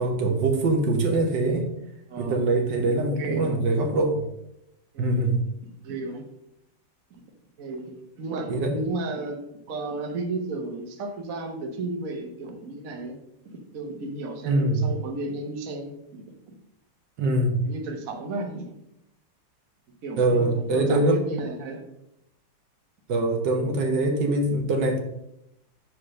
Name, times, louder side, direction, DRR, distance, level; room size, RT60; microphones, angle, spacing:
voice 1, 0.0-1.7 2.2-4.2 5.0-5.4 8.5-8.8 14.4-14.9 17.2-17.6 20.2-21.2 23.1-25.0, right 2 dB, 70° right, 3 dB, 1.6 m, -23 dB
voice 2, 2.1-2.4 3.1-3.6 4.9-5.4 5.8-6.2 7.1-7.2 7.6-9.4 9.7-13.2 13.4-16.2 17.6-18.7 20.0-21.8, right 2 dB, 50° right, 3 dB, 1.3 m, -33 dB
5.9 x 4.9 x 6.3 m, 0.82 s
omnidirectional pair, 2.0 m